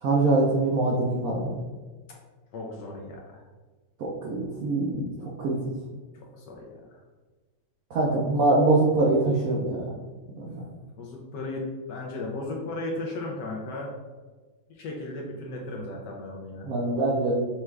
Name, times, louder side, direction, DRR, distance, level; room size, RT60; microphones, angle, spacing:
voice 1, 0.0-1.5 4.0-5.6 7.9-9.9 10.4-10.6 16.6-17.3, right 2 dB, 75° right, -3 dB, 0.8 m, -24 dB
voice 2, 2.5-3.4 6.1-7.0 11.0-13.9 14.7-16.7, left 2 dB, 70° left, -1 dB, 1.1 m, -36 dB
5.8 x 2.4 x 3.2 m, 1.3 s
omnidirectional pair, 2.3 m